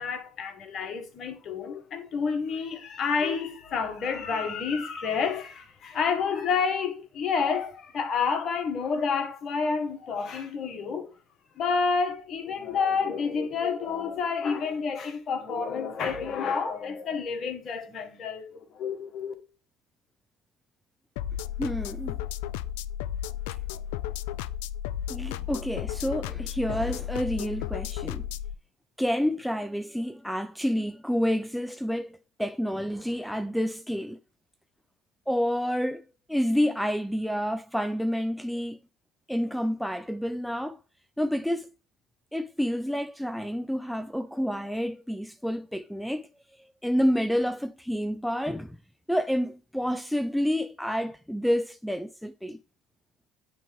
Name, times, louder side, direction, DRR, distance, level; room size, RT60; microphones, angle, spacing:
voice 1, 0.0-11.1 11.6-19.3, left 5 dB, 50° left, 1.6 m, -29 dB
sound 1, 21.2-28.5, left 11 dB, 75° left, 0.3 m, -33 dB
voice 2, 21.6-22.2 25.1-28.3 29.0-34.2 35.3-36.0 36.3-38.8 39.3-40.8 41.2-41.7 42.3-48.8 49.1-52.6, equal, ahead, 0.4 m, -29 dB
9.1 x 3.4 x 3.6 m
hypercardioid pair, 65°, 0 cm